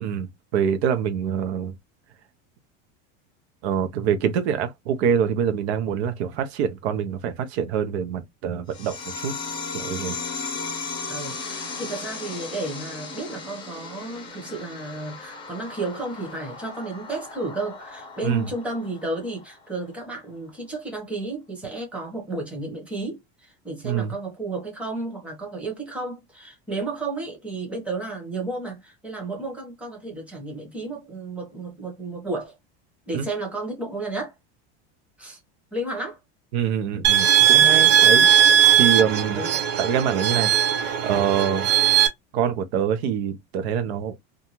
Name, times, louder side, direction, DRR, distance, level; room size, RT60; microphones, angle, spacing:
voice 1, 0.0-1.7 3.6-9.3 9.7-10.2 18.2-18.4 23.8-24.1 33.1-33.3 36.5-38.3 38.8-39.4 39.8-40.5 41.0-41.7 42.3-44.2, right 8 dB, 85° right, 0.7 m, -25 dB
sound 1, 8.7-19.7, left 4 dB, 15° left, 0.6 m, -36 dB
voice 2, 11.1-32.6 33.1-34.4 35.2-35.4 35.7-36.2 39.3-39.6, right 2 dB, 5° right, 0.9 m, -32 dB
sound 2, 37.0-42.1, right 9 dB, 50° right, 0.6 m, -18 dB
2.6 x 2.3 x 2.9 m
supercardioid pair, 160°, 32 cm